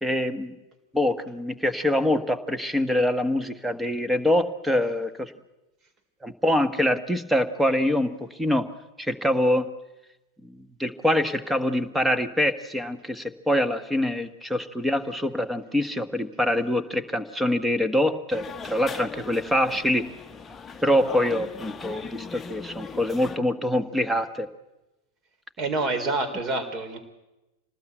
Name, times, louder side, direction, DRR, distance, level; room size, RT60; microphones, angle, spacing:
voice 1, 0.0-0.5 0.9-5.3 6.2-8.7 9.0-9.7 10.6-20.1 20.8-24.5, left 1 dB, 5° right, 11 dB, 1.5 m, -25 dB
sound 1, 18.3-23.4, left 5 dB, 15° left, 1.2 m, -39 dB
voice 2, 25.6-27.0, right 2 dB, 30° right, 9 dB, 4.1 m, -27 dB
27.0 x 19.5 x 8.0 m, 1.0 s
figure-of-eight pair, 90°, 0 cm